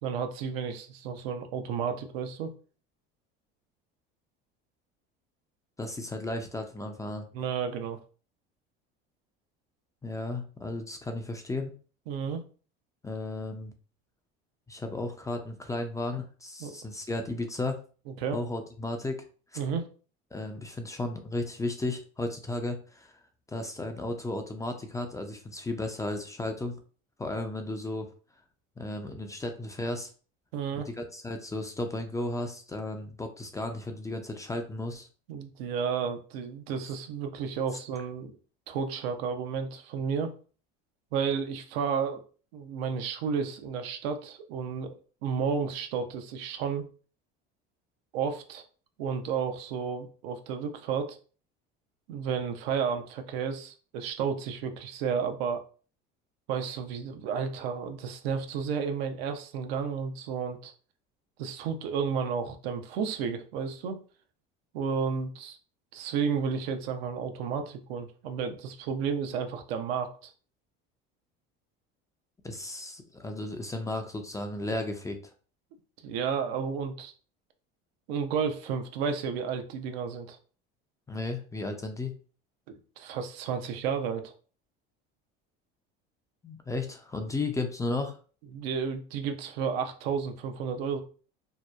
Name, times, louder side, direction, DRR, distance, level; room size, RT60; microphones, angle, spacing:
voice 1, 0.0-2.5 7.3-8.0 12.1-12.4 16.6-16.8 18.2-18.4 19.6-19.9 30.5-30.9 35.3-38.4 38.7-40.3 41.1-42.2 42.5-44.9 45.2-46.9 48.1-48.6 49.0-51.2 52.1-55.6 56.5-60.7 61.4-64.0 64.7-65.6 65.9-70.3 76.0-77.1 78.1-80.4 82.7-84.3 88.5-91.0, right 6 dB, 80° right, 6 dB, 0.5 m, -32 dB
voice 2, 5.8-7.3 10.0-11.7 13.0-13.7 14.7-17.8 18.3-19.3 19.5-19.6 20.3-23.2 23.5-26.8 27.2-28.1 28.8-30.1 30.7-35.1 72.4-75.3 81.1-82.2 86.4-88.2, left 2 dB, 10° left, 5 dB, 0.3 m, -34 dB
2.8 x 2.0 x 2.3 m, 0.39 s
supercardioid pair, 90°, 30 cm